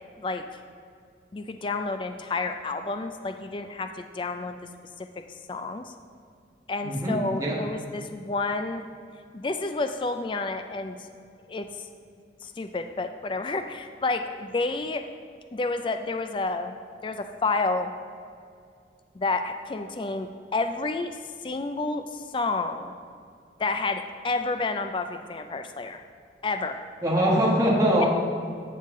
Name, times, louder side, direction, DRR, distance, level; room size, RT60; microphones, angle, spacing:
voice 1, 1.3-4.6 5.0-5.2 5.5-5.9 6.7-8.8 9.3-11.1 11.5-11.7 12.4-15.0 15.5-16.8 17.0-17.9 19.2-21.2 21.4-22.9 23.6-26.0 26.4-26.8, left 3 dB, 25° left, 7 dB, 0.3 m, -30 dB
voice 2, 6.8-7.6 27.0-28.1, equal, 20° right, -4 dB, 1.2 m, -22 dB
14.0 x 5.7 x 3.7 m, 2.3 s
head